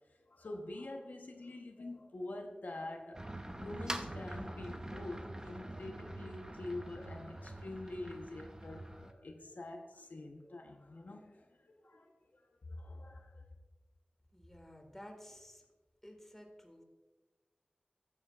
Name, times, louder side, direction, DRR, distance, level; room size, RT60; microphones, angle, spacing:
voice 1, 0.1-3.2 3.5-13.4, left 2 dB, 75° left, 2 dB, 1.0 m, -46 dB
sound 1, 3.1-9.1, right 1 dB, 20° right, 0.8 m, -44 dB
voice 2, 14.3-15.6 16.0-16.8, equal, 10° left, 2 dB, 1.9 m, -53 dB
14.0 x 9.0 x 2.4 m, 1.2 s
wide cardioid pair, 60°, 3 cm